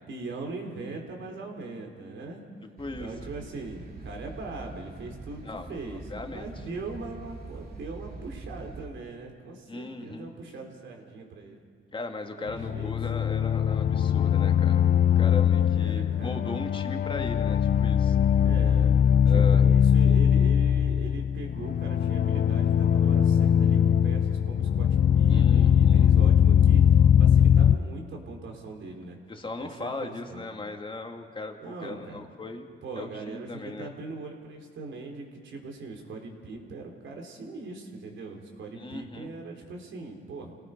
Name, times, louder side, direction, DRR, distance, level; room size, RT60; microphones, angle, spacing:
voice 1, 0.1-2.4 3.0-11.6 12.4-12.9 15.6-16.4 18.4-19.0 19.3-29.2 29.6-30.5 31.6-32.3 32.8-40.6, right 3 dB, 70° right, 1 dB, 4.0 m, -40 dB
sound 1, 2.8-8.9, right 3 dB, 50° right, 2.9 m, -43 dB
voice 2, 5.4-6.5 9.7-10.3 11.9-14.8 15.2-18.2 19.2-19.6 25.3-26.1 29.3-32.7 33.0-33.9 38.7-39.3, left 3 dB, 25° left, 4 dB, 2.1 m, -38 dB
sound 2, 12.5-27.8, left 8 dB, 45° left, 0.5 m, -21 dB
28.0 x 18.0 x 5.3 m, 2.3 s
cardioid pair, 90°, 20 cm